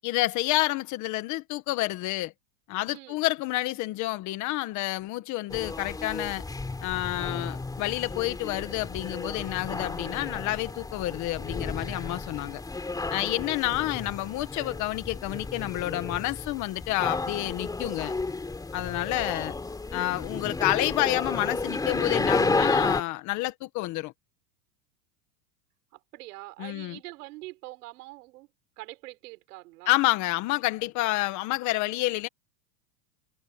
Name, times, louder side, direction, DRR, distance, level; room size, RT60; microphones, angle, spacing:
voice 1, 0.0-2.3 2.7-6.4 6.8-12.6 13.1-18.1 18.7-19.5 19.9-24.1 26.6-27.0 29.9-32.3, left 18 dB, 35° left, 1.6 m, -29 dB
voice 2, 2.9-3.2 19.1-19.3 25.9-28.5 28.8-29.9, right 20 dB, 65° right, 5.7 m, -44 dB
sound 1, 5.5-23.0, left 3 dB, 10° left, 3.4 m, -32 dB
supercardioid pair, 155°, 48 cm